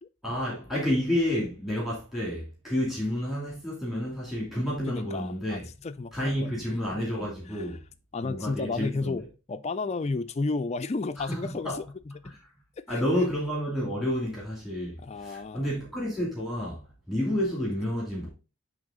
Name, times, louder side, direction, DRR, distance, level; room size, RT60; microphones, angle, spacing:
voice 1, 0.2-5.7 6.1-7.8 8.2-9.3 11.2-11.8 12.2-12.4 12.9-18.3, equal, ahead, 2.4 m, -30 dB
voice 2, 4.9-6.8 7.5-7.6 8.1-12.3 12.9-13.0 15.0-15.7, left 3 dB, 30° left, 0.3 m, -33 dB
8.8 x 3.4 x 3.6 m
head